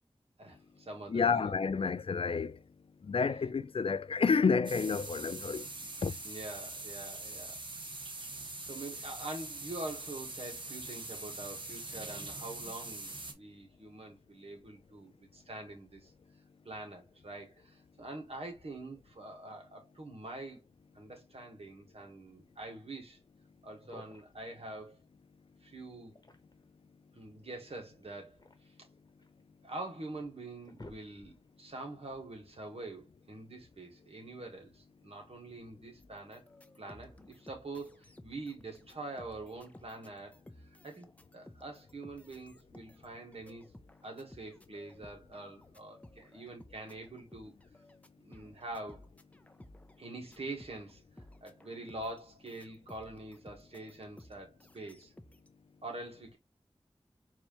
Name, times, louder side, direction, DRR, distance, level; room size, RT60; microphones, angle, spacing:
voice 1, 0.4-1.8 6.2-7.6 8.6-16.1 16.7-20.6 21.0-23.2 23.6-25.0 25.6-26.2 27.2-28.7 29.6-36.5 36.8-40.4 40.8-43.7 44.0-47.5 48.2-49.1 50.0-55.1 55.8-56.4, right 2 dB, 70° right, 1.8 m, -45 dB
voice 2, 1.1-2.6 3.0-5.7 6.0-6.2, left 5 dB, 60° left, 0.4 m, -29 dB
sound 1, 4.6-13.3, right 2 dB, 50° right, 1.0 m, -43 dB
sound 2, 23.7-24.5 25.9-26.8 28.0-29.4 30.0-30.1 30.4-31.6, left 2 dB, 40° left, 1.1 m, -54 dB
sound 3, 36.0-50.9 51.2-55.5, left 1 dB, 15° left, 0.6 m, -57 dB
4.7 x 2.9 x 3.0 m
wide cardioid pair, 65°, 10 cm